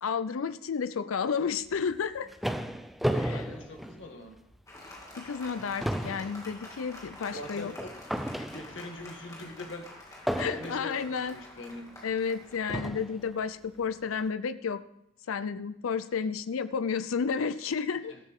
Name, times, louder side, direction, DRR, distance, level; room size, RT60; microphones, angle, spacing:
voice 1, 0.0-2.3 3.2-3.5 5.2-7.7 8.4-8.5 10.4-11.4 12.0-14.8 15.3-18.1, left 6 dB, 80° left, 13 dB, 0.5 m, -31 dB
sound 1, 1.9-4.6 5.0-5.2 5.5-9.0 10.3-11.0 11.9-12.0 12.7-13.2, equal, ahead, 0.5 m, -34 dB
voice 2, 3.1-4.3 7.2-8.0 8.2-11.9 18.1-18.2, left 2 dB, 65° left, 3 dB, 1.8 m, -43 dB
Applause, 4.7-13.7, left 1 dB, 15° left, 2.2 m, -48 dB
13.5 x 13.5 x 3.6 m, 0.80 s
head